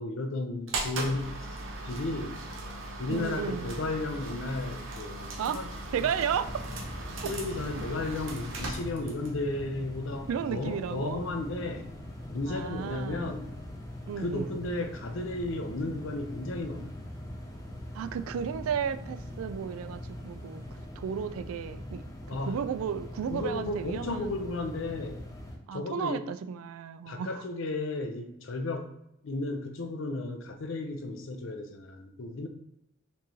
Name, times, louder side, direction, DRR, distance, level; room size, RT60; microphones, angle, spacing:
voice 1, 0.0-1.4 1.8-2.4 3.0-5.7 7.2-11.9 12.3-13.5 14.2-16.9 22.3-22.6 23.3-25.2 25.7-26.2 27.1-28.9 29.2-32.5, left 2 dB, 65° left, 6 dB, 0.5 m, -34 dB
sound 1, 0.7-9.4, right 2 dB, 65° right, 0.8 m, -38 dB
voice 2, 3.1-3.7 5.4-5.6 5.9-6.5 7.2-7.3 7.7-7.9 10.3-11.2 12.5-13.3 14.1-14.6 17.9-20.6 21.0-22.0 22.3-24.3 25.7-27.4, right 7 dB, 80° right, 12 dB, 0.3 m, -33 dB
sound 2, 5.6-20.8, equal, 30° right, 1.2 m, -50 dB
sound 3, 6.4-25.6, left 1 dB, 15° left, 0.5 m, -42 dB
4.3 x 3.1 x 2.7 m, 0.79 s
head